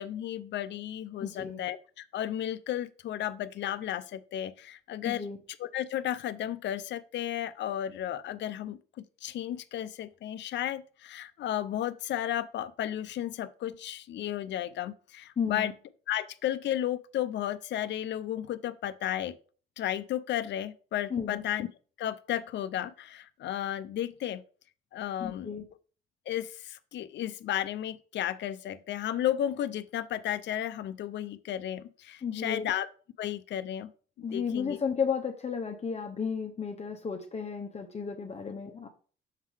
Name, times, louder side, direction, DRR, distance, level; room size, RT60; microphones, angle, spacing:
voice 1, 0.0-5.3 5.6-8.8 9.2-15.7 16.1-19.3 19.8-21.7 22.0-24.4 24.9-25.5 26.3-32.9 33.2-33.9 34.2-34.8, left 11 dB, 65° left, 13 dB, 0.5 m, -33 dB
voice 2, 1.2-1.6 5.0-5.4 15.4-15.7 21.1-21.4 25.2-25.7 32.2-32.7 34.2-38.9, left 6 dB, 35° left, 4 dB, 0.8 m, -33 dB
6.5 x 3.8 x 4.8 m, 0.40 s
cardioid pair, 90°, 20 cm